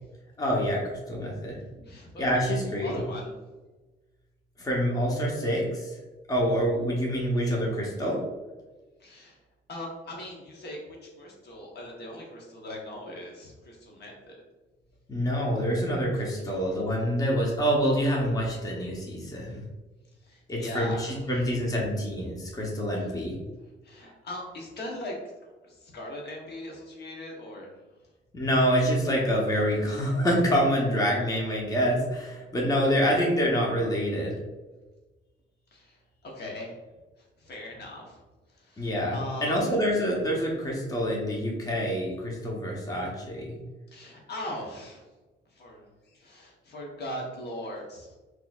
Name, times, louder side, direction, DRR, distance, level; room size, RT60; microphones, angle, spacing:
voice 1, 0.4-1.6 2.2-3.0 4.6-6.0 6.3-8.2 15.1-19.6 20.5-23.4 28.3-34.3 38.8-43.6, equal, 20° left, -2 dB, 0.9 m, -26 dB
voice 2, 1.7-2.2 2.8-3.3 9.0-9.4 9.7-14.4 20.3-21.4 22.9-23.1 23.8-25.1 25.7-27.7 35.7-36.0 36.2-36.7 37.4-38.2 38.6-39.6 43.9-45.0 45.6-48.1, left 1 dB, 55° left, -1 dB, 1.0 m, -40 dB
3.9 x 2.9 x 2.4 m, 1.2 s
cardioid pair, 90°, 20 cm